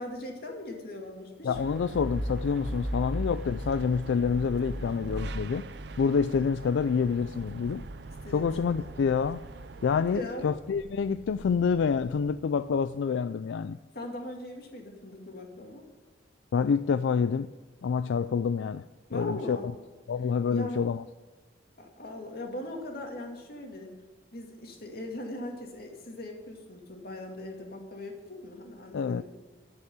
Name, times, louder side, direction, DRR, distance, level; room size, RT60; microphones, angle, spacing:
voice 1, 0.0-1.7 2.8-2.9 6.4-6.5 8.2-8.9 9.9-10.5 13.9-15.9 19.1-19.7 20.5-20.8 21.8-23.9 24.3-29.2, left 1 dB, 55° left, 2 dB, 2.3 m, -40 dB
voice 2, 1.4-5.7 6.0-7.8 8.3-9.4 9.8-13.8 16.5-17.5 17.8-18.8 19.1-19.6 20.1-21.0 28.9-29.2, left 6 dB, 80° left, 13 dB, 0.3 m, -27 dB
sound 1, 1.5-9.8 10.2-12.8, equal, 5° right, 0.6 m, -39 dB
sound 2, 1.5-10.2, right 4 dB, 60° right, 0.5 m, -44 dB
9.9 x 8.1 x 9.7 m, 1.3 s
head